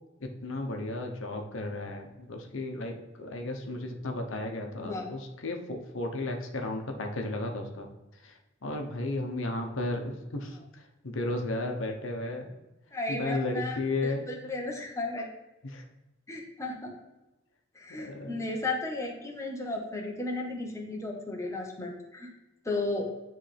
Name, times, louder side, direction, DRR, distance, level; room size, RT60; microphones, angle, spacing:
voice 1, 0.2-7.9 8.2-12.5 13.1-14.3 15.6-15.8 17.9-18.5, left 2 dB, 75° left, 3 dB, 0.9 m, -34 dB
voice 2, 12.9-13.8 14.0-15.3 16.3-17.0 17.7-22.3 22.6-23.1, left 2 dB, 15° left, 0 dB, 1.0 m, -34 dB
10.0 x 3.3 x 3.4 m, 1.0 s
head